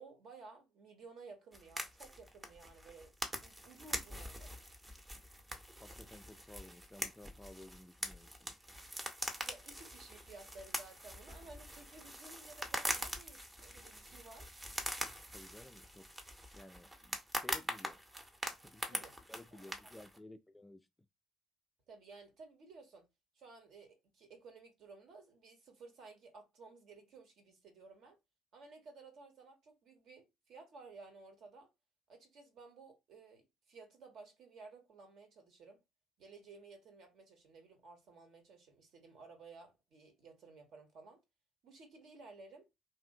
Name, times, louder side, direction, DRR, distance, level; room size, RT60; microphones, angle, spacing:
voice 1, 0.0-3.1 3.4-4.5 9.4-14.5 18.9-19.2 19.5-19.6 19.9-20.0 21.9-23.1 23.3-28.2 28.5-31.7 32.1-35.8 36.2-41.2 41.6-42.7, right 4 dB, 55° right, 0.9 m, -56 dB
sound 1, 1.5-20.2, equal, 15° right, 0.7 m, -43 dB
voice 2, 5.8-8.5 15.3-16.1 16.5-18.0 18.5-20.9, left 1 dB, 10° left, 0.3 m, -55 dB
2.7 x 2.5 x 2.5 m
figure-of-eight pair, 50°, 0 cm